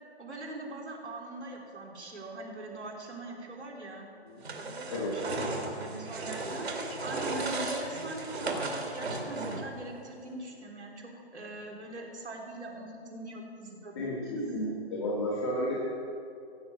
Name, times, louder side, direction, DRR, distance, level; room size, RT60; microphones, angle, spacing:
voice 1, 0.2-4.1 4.8-6.7 7.0-14.1 14.3-14.6, right 2 dB, 90° right, 0 dB, 3.7 m, -42 dB
sound 1, 4.4-9.8, right 2 dB, 70° right, 2.5 m, -35 dB
voice 2, 4.9-5.5 13.9-15.8, left 1 dB, ahead, -3 dB, 0.6 m, -33 dB
16.0 x 7.1 x 8.5 m, 2.6 s
hypercardioid pair, 170°, 33 cm